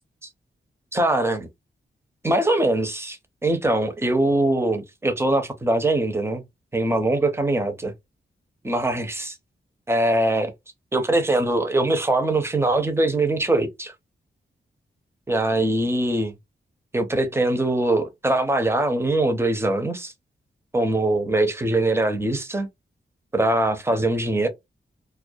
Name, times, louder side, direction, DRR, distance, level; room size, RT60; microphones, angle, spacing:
voice 1, 0.9-1.5 2.2-6.4 6.7-7.9 8.6-9.4 9.9-10.5 10.9-13.9 15.3-16.3 16.9-20.1 20.7-22.7 23.3-24.5, right 2 dB, 10° right, 0.5 m, -22 dB
2.2 x 2.1 x 2.6 m
wide cardioid pair, 120°, 20 cm